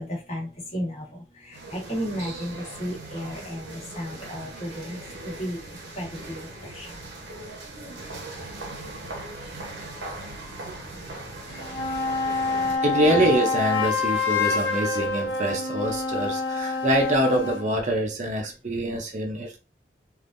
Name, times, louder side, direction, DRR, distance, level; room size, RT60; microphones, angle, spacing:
voice 1, 0.0-5.6 6.0-6.9, equal, 35° left, 1.3 m, -34 dB
sound 1, 1.5-12.8, right 2 dB, 85° right, 0.9 m, -39 dB
sound 2, 11.5-17.7, left 4 dB, 70° left, 1.3 m, -26 dB
voice 2, 12.8-19.6, right 1 dB, 40° right, 0.6 m, -25 dB
3.4 x 2.5 x 2.5 m
head